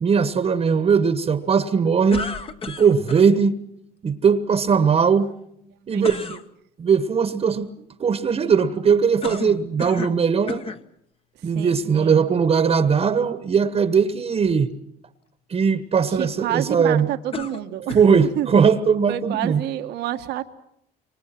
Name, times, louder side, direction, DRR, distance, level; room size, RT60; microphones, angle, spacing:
voice 1, 0.0-2.3 2.7-3.6 4.0-5.3 5.9-6.2 6.8-7.7 8.0-10.6 11.4-14.7 15.5-17.1 17.9-19.6, right 6 dB, 35° right, 1.4 m, -19 dB
sound 1, 2.1-3.3 6.0-6.4 9.2-10.2 10.5-10.8 11.6-11.7 17.3-18.2, left 4 dB, 35° left, 1.4 m, -32 dB
voice 2, 5.9-6.4 11.5-12.3 16.1-18.5 19.1-20.4, right 13 dB, 85° right, 1.6 m, -29 dB
27.5 x 24.0 x 6.1 m
cardioid pair, 110°, 17 cm